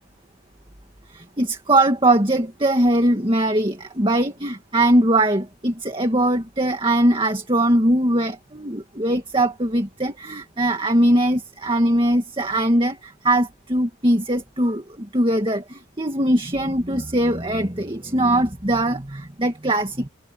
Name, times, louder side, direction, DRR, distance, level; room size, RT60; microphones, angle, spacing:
voice 1, 1.1-20.1, right 1 dB, 25° right, 2.1 m, -21 dB
head